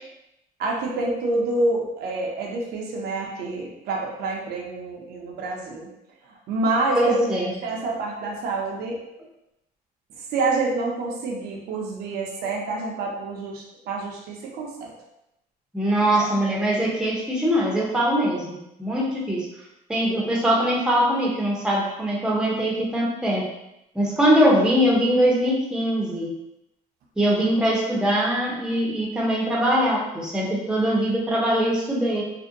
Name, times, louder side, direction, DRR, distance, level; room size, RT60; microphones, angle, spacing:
voice 1, 0.6-5.9 6.5-7.3 7.6-9.0 10.3-14.9 16.0-16.3, right 2 dB, 70° right, -1 dB, 0.6 m, -27 dB
voice 2, 6.9-7.5 15.7-19.5 19.9-23.5 23.9-26.3 27.2-32.2, equal, 5° right, -4 dB, 0.6 m, -22 dB
2.6 x 2.1 x 2.5 m, 0.87 s
cardioid pair, 110°, 17 cm